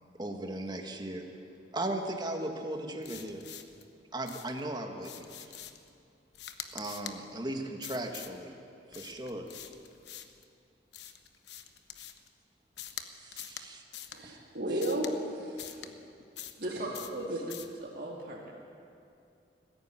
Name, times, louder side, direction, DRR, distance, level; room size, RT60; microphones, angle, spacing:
voice 1, 0.2-1.3 1.7-3.4 4.1-5.3 6.7-8.5 8.9-9.5 13.2-13.8 14.2-14.4, right 1 dB, 25° right, 3 dB, 1.8 m, -37 dB
sound 1, 3.0-3.8 4.3-4.6 5.0-5.9 6.3-7.2 7.8-8.4 8.9-10.4 10.9-12.3 12.8-13.1 13.3-13.7 13.9-14.2 14.8-15.1 15.6-15.9 16.4-16.6 16.9-17.2 17.5-17.7, left 10 dB, 75° left, 1.1 m, -45 dB
voice 2, 14.1-15.9 16.5-16.9 17.3-17.4, right 1 dB, 70° right, -6 dB, 4.3 m, -34 dB
voice 3, 16.6-17.3 17.8-18.5, right 1 dB, 55° right, -4 dB, 2.3 m, -38 dB
19.5 x 14.5 x 9.2 m, 2.6 s
head